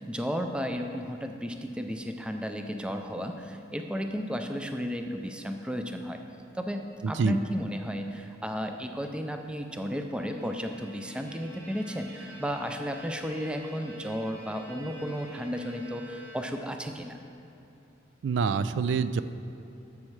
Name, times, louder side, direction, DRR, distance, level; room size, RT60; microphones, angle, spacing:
voice 1, 0.0-6.2 6.5-17.2, equal, 5° right, 5 dB, 0.3 m, -33 dB
voice 2, 7.0-7.4 18.2-19.2, right 5 dB, 80° right, 13 dB, 0.3 m, -26 dB
Bowed string instrument, 9.9-16.9, right 1 dB, 55° right, 2.0 m, -49 dB
11.5 x 7.2 x 3.2 m, 2.8 s
head